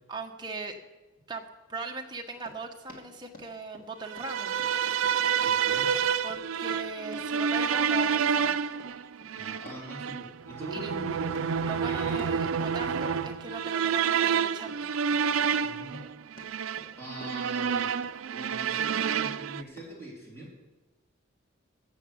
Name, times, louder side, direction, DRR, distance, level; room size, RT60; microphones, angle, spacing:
voice 1, 0.1-0.7 1.3-1.4 1.7-4.5 6.2-8.5 10.7-11.0 11.6-14.9, right 3 dB, 20° right, 3 dB, 1.1 m, -39 dB
Run, 2.3-20.0, left 1 dB, 40° left, 2.4 m, -53 dB
sound 1, 4.1-19.6, right 7 dB, 80° right, 0.4 m, -29 dB
voice 2, 5.4-5.9 9.4-12.3 15.6-16.0 17.0-18.0 18.3-20.5, right 1 dB, 10° left, -4 dB, 3.5 m, -42 dB
14.0 x 6.9 x 7.9 m, 1.1 s
head